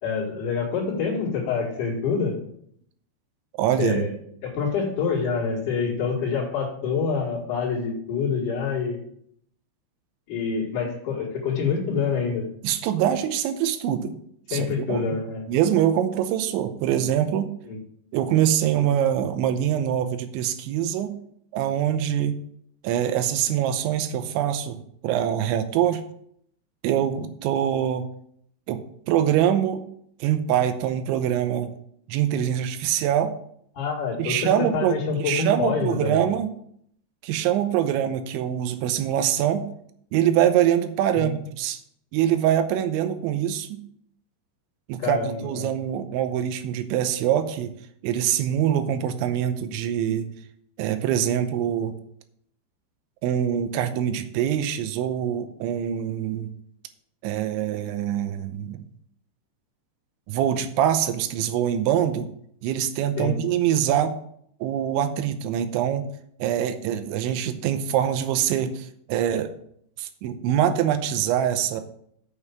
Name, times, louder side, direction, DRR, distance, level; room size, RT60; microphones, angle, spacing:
voice 1, 0.0-2.4 3.8-4.1 4.4-9.0 10.3-12.5 14.5-15.4 17.6-17.8 33.7-36.2 41.1-41.3 45.0-45.7 63.2-63.4, left 5 dB, 50° left, -7 dB, 3.0 m, -26 dB
voice 2, 3.6-4.1 12.6-14.2 14.5-15.2 15.5-17.5 18.1-21.2 21.5-22.4 22.8-26.0 26.8-28.1 28.7-29.8 30.2-31.7 32.1-33.3 34.2-36.5 37.2-39.7 40.1-41.8 42.1-43.8 44.9-47.7 48.0-50.3 50.8-52.0 53.2-56.5 57.2-58.9 60.3-62.3 62.6-64.1 64.6-66.1 66.4-69.5 70.0-71.8, right 10 dB, 80° right, 8 dB, 3.0 m, -24 dB
8.2 x 5.4 x 7.1 m, 0.68 s
omnidirectional pair, 5.5 m